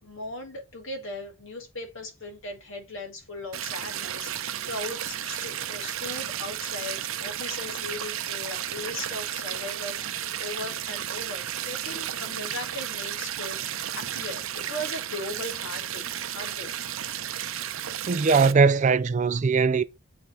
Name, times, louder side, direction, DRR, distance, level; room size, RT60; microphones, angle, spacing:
voice 1, 0.0-13.6 14.0-16.7, left 2 dB, 60° left, 2.2 m, -38 dB
sound 1, 3.5-18.5, right 10 dB, 65° right, 0.6 m, -33 dB
voice 2, 18.1-19.8, right 5 dB, 35° right, 0.3 m, -20 dB
8.6 x 3.6 x 3.8 m
head